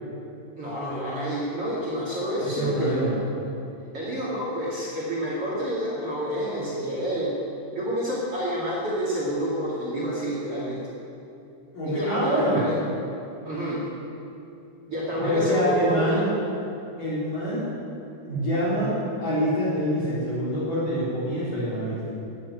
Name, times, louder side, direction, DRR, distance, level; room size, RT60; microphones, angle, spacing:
voice 1, 0.5-3.0 3.9-7.4 7.7-10.8 11.8-12.8 13.4-13.8 14.9-16.2, equal, 40° right, -5 dB, 2.3 m, -29 dB
voice 2, 2.4-3.2 11.7-12.6 15.2-16.3 17.0-17.7 18.2-22.0, equal, 45° left, -9 dB, 4.7 m, -25 dB
15.0 x 9.8 x 9.7 m, 2.7 s
omnidirectional pair, 5.9 m